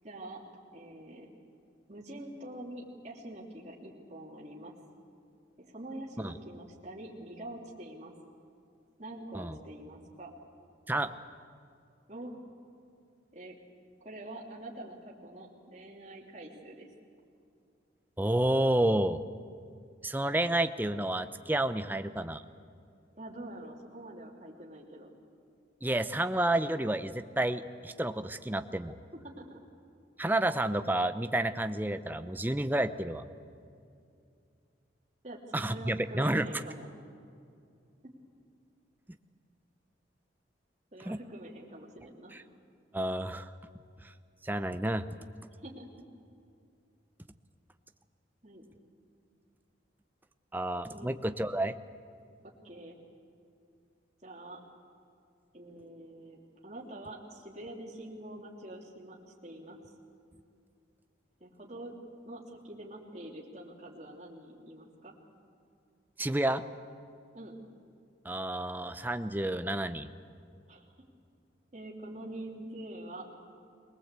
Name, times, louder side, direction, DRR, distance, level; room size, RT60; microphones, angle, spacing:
voice 1, 0.0-0.4 0.7-1.3 1.9-4.8 5.6-8.1 9.0-10.3 12.1-12.3 13.3-13.6 14.0-16.9 21.9-22.1 23.1-25.1 29.1-29.6 35.2-36.8 38.0-38.1 40.9-42.4 45.6-46.0 48.4-48.6 50.9-51.1 52.6-53.0 54.2-54.6 55.5-59.8 61.4-61.9 62.2-65.1 67.3-67.5 70.7-70.9 71.7-73.3, right 1 dB, 35° right, -3 dB, 2.9 m, -45 dB
voice 2, 18.2-19.2 20.0-22.4 25.8-29.0 30.2-33.2 35.5-36.6 41.0-41.2 42.3-42.4 42.9-43.5 44.0-44.1 44.4-45.1 50.5-51.7 66.2-66.6 68.2-70.1, right 1 dB, 10° right, 10 dB, 0.6 m, -30 dB
23.0 x 19.5 x 8.2 m, 2.4 s
head